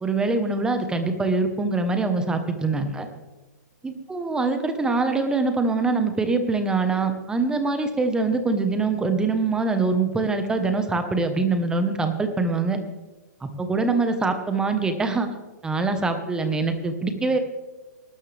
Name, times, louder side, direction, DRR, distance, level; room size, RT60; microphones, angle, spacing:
voice 1, 0.0-3.1 3.8-12.8 13.4-15.3 15.6-17.4, right 3 dB, 10° right, 7 dB, 1.2 m, -24 dB
19.5 x 12.5 x 3.5 m, 1.1 s
hypercardioid pair, 145°, 10 cm